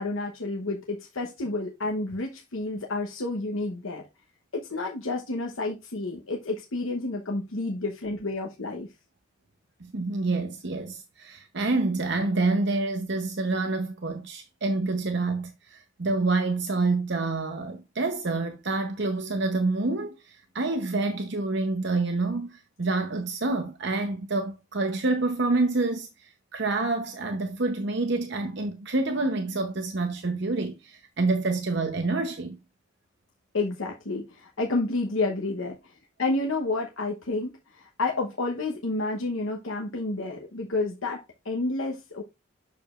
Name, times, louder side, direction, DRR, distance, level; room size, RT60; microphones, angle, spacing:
voice 1, 0.0-4.0 4.5-8.9 33.5-42.2, left 2 dB, 85° left, 1.0 m, -30 dB
voice 2, 9.8-32.6, right 3 dB, 55° right, 0.8 m, -27 dB
8.3 x 6.7 x 2.5 m
head